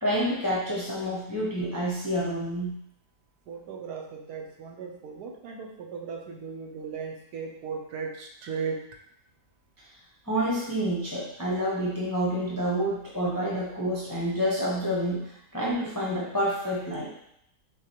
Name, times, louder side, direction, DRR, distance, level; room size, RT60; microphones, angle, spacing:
voice 1, 0.0-2.8 10.3-15.2 15.5-17.1, equal, 25° left, -7 dB, 0.4 m, -28 dB
voice 2, 3.5-8.8, right 5 dB, 80° right, 1 dB, 1.2 m, -37 dB
5.7 x 2.3 x 2.9 m, 0.75 s
omnidirectional pair, 1.7 m